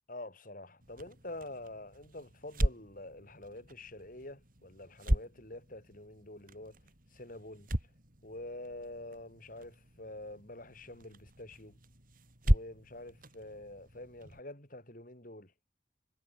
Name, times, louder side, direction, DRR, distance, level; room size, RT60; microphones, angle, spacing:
voice 1, 0.1-6.8 7.1-7.7 8.2-11.8 12.4-15.5, left 1 dB, 45° left, 5.8 m, -47 dB
sound 1, 0.8-14.4, equal, 50° right, 5.5 m, -37 dB
head